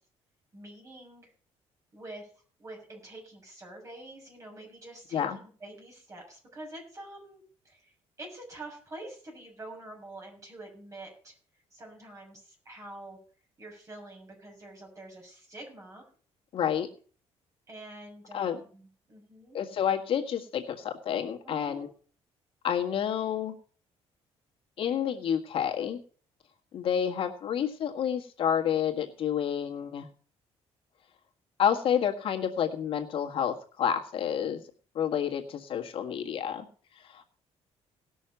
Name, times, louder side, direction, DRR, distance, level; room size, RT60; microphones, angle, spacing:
voice 1, 0.5-1.3 1.9-2.3 2.6-7.9 8.2-11.3 11.7-13.2 13.6-16.0 17.7-19.6 21.4-21.9, right 1 dB, 30° right, 1 dB, 6.8 m, -46 dB
voice 2, 16.5-16.9 18.3-18.6 19.5-21.9 22.6-23.5 24.8-26.0 26.7-30.1 31.6-34.6 34.9-36.6 36.9-37.2, left 8 dB, 55° left, 2 dB, 1.6 m, -29 dB
18.5 x 6.3 x 5.8 m, 0.42 s
cardioid pair, 140°, 11 cm